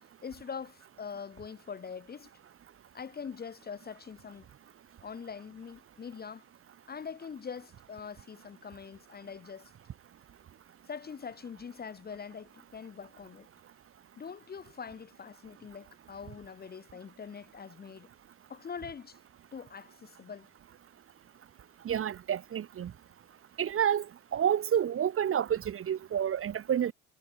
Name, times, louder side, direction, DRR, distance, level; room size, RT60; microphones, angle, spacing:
voice 1, 0.2-2.3 2.9-4.5 5.0-6.4 6.9-9.7 10.9-13.5 14.2-18.1 18.5-19.2 19.5-20.5, left 6 dB, 25° left, 1.3 m, -43 dB
voice 2, 21.8-22.9 23.6-24.1 24.3-26.9, right 9 dB, 30° right, 1.5 m, -29 dB
figure-of-eight pair, 65°, 42 cm